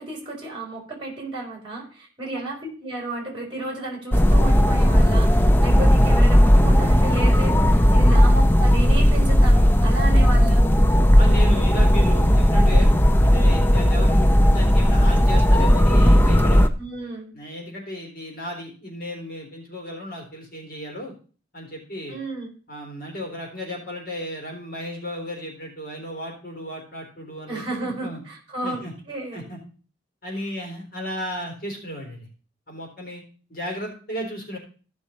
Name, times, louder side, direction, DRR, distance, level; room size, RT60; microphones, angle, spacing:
voice 1, 0.0-10.7 16.8-17.3 22.1-22.5 27.5-29.4 30.4-30.5, right 2 dB, 25° right, 0 dB, 4.1 m, -32 dB
sound 1, 4.1-16.7, equal, 10° left, 0.5 m, -16 dB
voice 2, 11.2-12.9 13.2-16.7 17.3-21.1 21.5-22.2 22.7-28.2 28.6-28.9 29.3-29.6 30.2-32.3 32.7-33.2 33.5-34.6, equal, 50° left, 1 dB, 3.6 m, -34 dB
14.5 x 6.3 x 4.2 m, 0.39 s
head